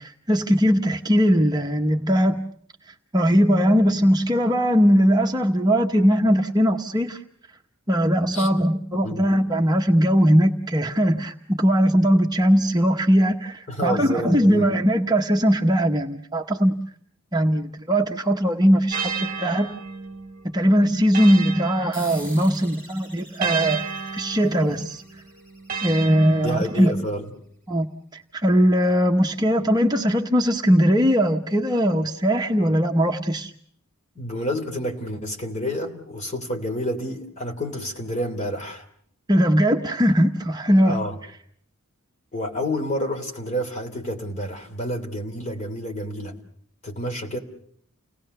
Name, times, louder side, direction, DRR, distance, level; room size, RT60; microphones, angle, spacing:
voice 1, 0.0-2.4 3.1-7.2 7.9-16.7 17.3-19.7 20.5-23.8 24.1-25.0 25.8-26.9 27.7-27.9 28.3-33.5 39.3-41.0, equal, 20° right, 3 dB, 0.9 m, -20 dB
voice 2, 13.7-14.7 26.4-27.3 34.1-38.8 40.8-41.2 42.3-46.3 46.8-47.4, equal, 35° left, 3 dB, 3.2 m, -29 dB
sound 1, 18.9-22.6 23.4-27.1, right 5 dB, 40° right, 1.2 m, -33 dB
sound 2, 21.9-26.9, right 1 dB, 5° left, 7.6 m, -46 dB
30.0 x 18.5 x 6.7 m, 0.63 s
head